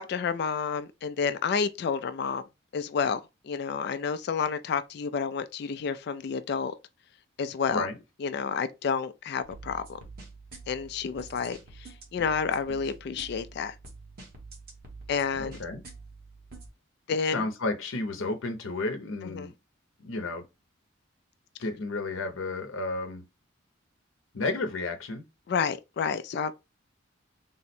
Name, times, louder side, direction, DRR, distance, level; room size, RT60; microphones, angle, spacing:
voice 1, 0.0-2.4 2.7-6.7 7.4-7.9 8.2-10.0 10.7-13.8 15.1-15.6 17.1-17.4 19.3-19.5 25.5-26.5, left 6 dB, 55° left, 0.3 m, -30 dB
sound 1, 9.4-16.7, right 3 dB, 50° right, 1.1 m, -47 dB
voice 2, 15.4-15.8 17.3-19.5 20.0-20.4 21.6-23.2 24.3-25.2, left 2 dB, 85° left, 0.7 m, -32 dB
3.6 x 2.1 x 4.1 m
head